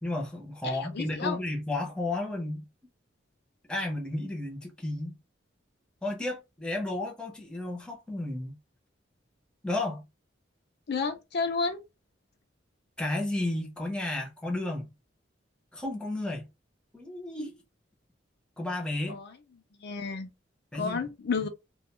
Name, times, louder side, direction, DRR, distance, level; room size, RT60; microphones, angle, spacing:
voice 1, 0.0-2.6 3.7-5.1 6.0-8.6 9.6-10.0 13.0-14.9 15.7-16.5 16.9-17.6 18.6-19.2 20.7-21.0 21.4-21.5, left 2 dB, 5° left, 0.6 m, -33 dB
voice 2, 0.6-1.4 10.9-11.8 19.1-19.3 19.8-20.3 20.8-21.5, left 4 dB, 60° left, 0.5 m, -31 dB
2.3 x 2.2 x 2.9 m
head